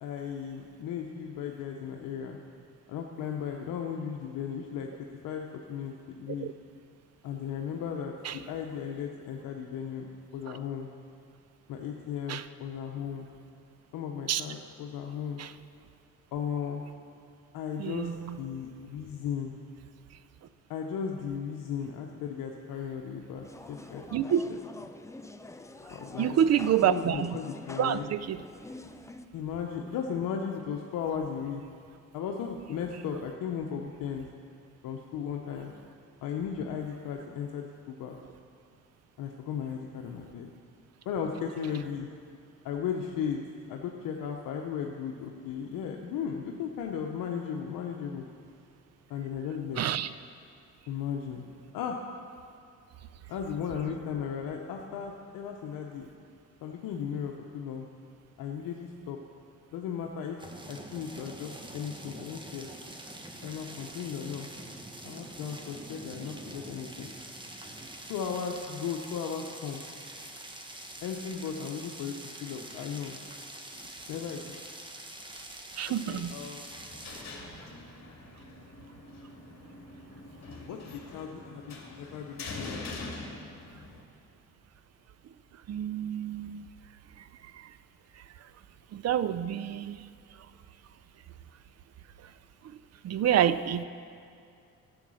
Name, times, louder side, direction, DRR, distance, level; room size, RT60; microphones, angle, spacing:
voice 1, 0.0-2.4 2.9-4.9 5.2-6.5 7.2-10.9 11.7-13.3 13.9-15.4 16.3-16.8 17.5-19.5 20.7-24.6 25.9-26.4 26.8-28.1 29.3-31.6 32.1-34.3 34.8-35.7 36.2-38.1 39.2-40.5 41.1-42.1 42.6-48.2 49.1-49.8 50.9-51.5 51.7-52.0 53.3-56.1 56.6-57.8 58.4-59.2 59.7-62.7 63.4-64.5 65.0-67.1 68.1-69.8 71.0-72.1 72.4-73.2 74.1-74.6 75.3-75.4 76.1-76.7 80.7-83.0, left 7 dB, 80° left, 1 dB, 0.9 m, -36 dB
voice 2, 17.8-18.4 24.1-24.4 26.2-27.4 27.8-28.4 49.8-50.1 75.8-76.3 85.7-86.7 87.5-87.7 88.9-90.0 93.0-93.8, right 10 dB, 50° right, 15 dB, 0.5 m, -28 dB
sound 1, 23.4-29.2, left 2 dB, 10° left, 0.5 m, -46 dB
sound 2, 60.4-77.2, right 1 dB, 15° right, 1.3 m, -45 dB
sound 3, 76.7-84.0, left 3 dB, 50° left, 2.2 m, -44 dB
11.5 x 7.9 x 6.3 m, 2.5 s
cardioid pair, 80°, 33 cm